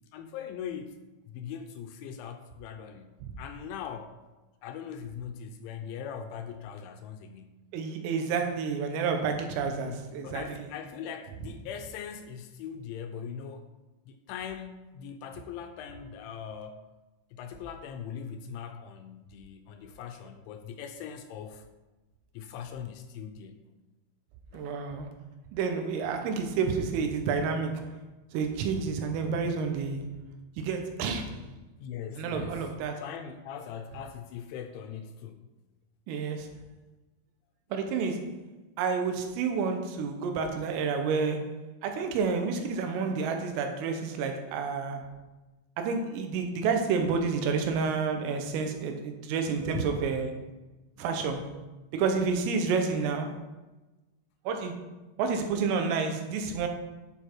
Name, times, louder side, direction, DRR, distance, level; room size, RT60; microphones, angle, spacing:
voice 1, 0.1-1.0 1.3-4.1 4.6-7.6 9.7-13.7 14.1-16.8 17.3-21.7 22.3-23.7 24.5-24.7 31.8-32.6 33.0-35.4 49.7-50.0, left 7 dB, 80° left, 6 dB, 2.8 m, -41 dB
voice 2, 7.7-10.7 24.5-25.1 25.5-27.9 28.3-30.1 30.6-31.4 32.2-33.0 36.1-36.5 37.7-38.3 38.8-41.6 41.8-45.1 45.8-50.4 51.0-51.5 51.9-53.4 54.5-54.7 55.2-56.7, right 5 dB, 85° right, 5 dB, 3.7 m, -29 dB
10.5 x 7.0 x 4.6 m, 1.1 s
omnidirectional pair, 5.8 m